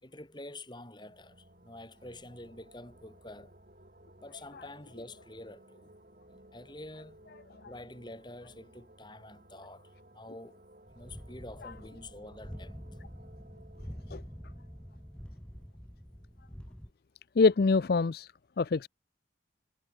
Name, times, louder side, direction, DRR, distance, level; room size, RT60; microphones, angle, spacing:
voice 1, 0.0-3.5 4.2-5.9 6.3-7.2 7.6-10.6 10.9-12.8, left 1 dB, 25° left, 3.7 m, -48 dB
sound 1, 0.8-16.3, right 1 dB, 45° right, 5.4 m, -59 dB
sound 2, 10.9-16.9, equal, 5° left, 1.4 m, -46 dB
voice 2, 17.4-18.9, left 4 dB, 55° left, 0.5 m, -25 dB
head